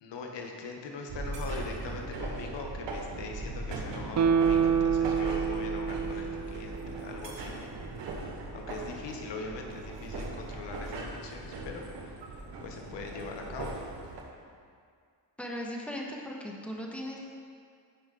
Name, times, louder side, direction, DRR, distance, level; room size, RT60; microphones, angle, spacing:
voice 1, 0.0-7.6 8.5-12.2 12.6-13.7, left 3 dB, 85° left, 2 dB, 1.2 m, -41 dB
sound 1, 1.1-14.2, right 2 dB, 90° right, 1.4 m, -39 dB
Guitar, 4.1-7.4 7.8-7.9, right 7 dB, 40° right, 0.5 m, -28 dB
voice 2, 15.4-17.2, equal, 5° left, -2 dB, 1.7 m, -38 dB
16.0 x 5.5 x 3.9 m, 2.2 s
cardioid pair, 70°, 42 cm